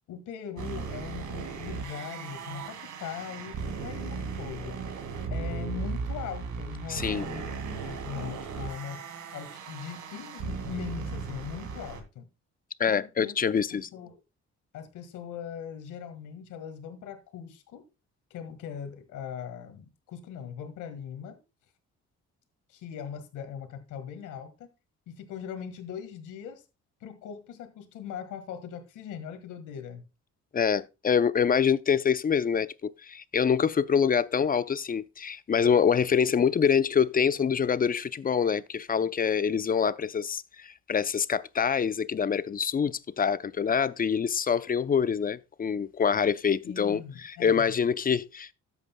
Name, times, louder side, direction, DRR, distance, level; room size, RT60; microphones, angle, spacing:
voice 1, 0.1-4.8 5.3-9.0 9.3-12.3 12.9-14.2 14.7-17.9 18.3-21.4 22.7-24.7 25.1-26.6 27.0-30.1 46.6-47.8, left 8 dB, 90° left, 1.7 m, -40 dB
sound 1, 0.6-12.0, right 5 dB, 70° right, 2.2 m, -37 dB
voice 2, 6.9-7.2 12.8-13.9 30.5-48.5, left 7 dB, 30° left, 0.5 m, -25 dB
13.0 x 8.3 x 2.2 m
cardioid pair, 90°, 30 cm